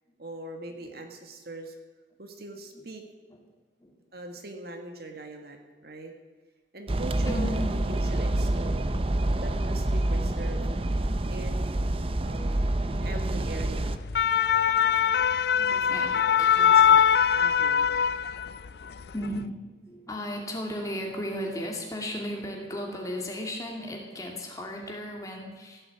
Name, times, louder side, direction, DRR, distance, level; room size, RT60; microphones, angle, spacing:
voice 1, 0.2-1.7 2.2-3.0 4.1-6.1 6.7-8.9 9.4-10.6 11.3-11.7 12.2-13.9 15.7-17.0 17.3-17.9, right 2 dB, 55° right, 4 dB, 1.8 m, -41 dB
sound 1, 6.9-14.0, right 1 dB, 30° right, 0.6 m, -27 dB
voice 2, 7.3-7.7 15.6-16.6 19.1-19.5 19.9-25.8, left 1 dB, 20° left, 0 dB, 2.5 m, -35 dB
sound 2, 13.9-18.7 19.0-19.3, left 8 dB, 55° left, 0.4 m, -22 dB
15.5 x 8.6 x 8.5 m, 1.3 s
head